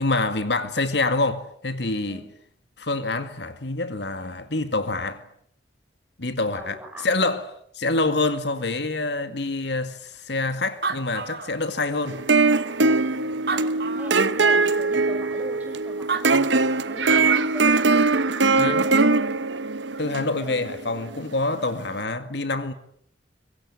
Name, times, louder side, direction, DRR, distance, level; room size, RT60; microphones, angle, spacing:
voice 1, 0.0-2.3 2.8-5.2 6.2-12.2 18.6-18.9 20.0-22.7, left 2 dB, 70° left, 2.0 m, -26 dB
voice 2, 6.4-7.1 13.5-16.4 16.7-19.0 20.4-20.7, right 1 dB, 10° right, 6.6 m, -40 dB
Animal, 10.4-10.5 10.6-12.1 12.7-12.8 13.3-14.3 15.8-15.9 16.1-17.0, right 4 dB, 60° right, 2.4 m, -31 dB
sound 1, 12.1-21.3, right 3 dB, 85° right, 1.2 m, -21 dB
25.5 x 23.5 x 9.7 m
head